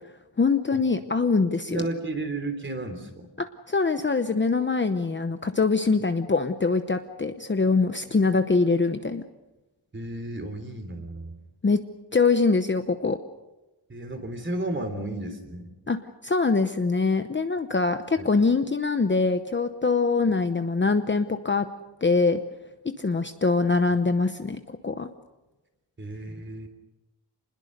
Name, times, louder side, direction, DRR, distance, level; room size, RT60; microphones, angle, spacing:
voice 1, 0.4-1.9 3.4-9.2 11.6-11.8 12.1-13.2 15.9-16.0 16.2-21.6 22.0-22.4 23.0-25.1, left 4 dB, 25° left, 8 dB, 0.9 m, -23 dB
voice 2, 1.7-3.3 9.9-11.4 13.9-15.7 18.2-18.3 26.0-26.7, right 2 dB, 25° right, 7 dB, 3.5 m, -33 dB
27.5 x 21.0 x 6.7 m, 1.0 s
wide cardioid pair, 170°, 45 cm